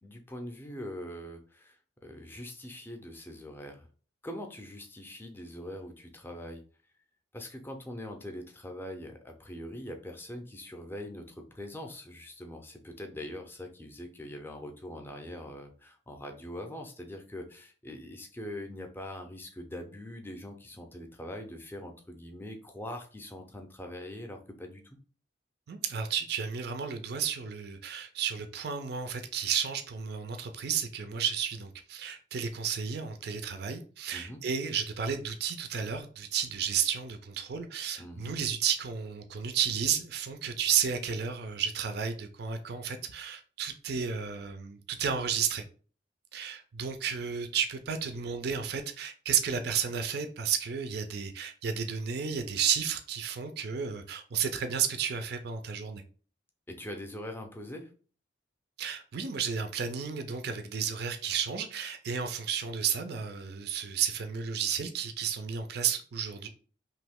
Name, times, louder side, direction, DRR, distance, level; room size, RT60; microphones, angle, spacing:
voice 1, 0.0-3.9 4.2-6.6 7.3-25.0 34.1-34.4 38.0-38.3 56.7-57.9, left 1 dB, 10° left, 0.5 m, -42 dB
voice 2, 25.7-45.6 46.3-56.0 58.8-66.5, right 7 dB, 55° right, 0.4 m, -32 dB
3.0 x 2.7 x 3.5 m
head